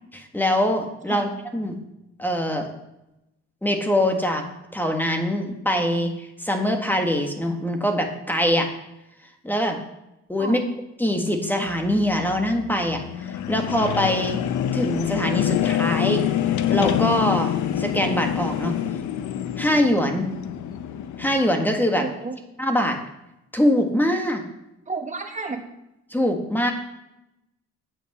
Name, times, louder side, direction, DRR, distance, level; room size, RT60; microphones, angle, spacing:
voice 1, 0.3-1.8 2.2-2.7 3.6-8.7 9.4-9.8 10.3-10.6 11.0-13.0 13.3-14.4 14.7-16.2 16.7-17.5 17.8-18.8 19.6-20.3 21.2-22.1 22.6-23.0 23.5-24.5 26.1-26.7, equal, 5° left, 4 dB, 1.6 m, -23 dB
sound 1, 11.7-21.4, left 10 dB, 75° left, 0.8 m, -26 dB
voice 2, 22.0-22.4 24.9-25.6, right 4 dB, 25° right, 4 dB, 1.6 m, -31 dB
9.0 x 5.4 x 7.4 m, 0.90 s
cardioid pair, 90°, 30 cm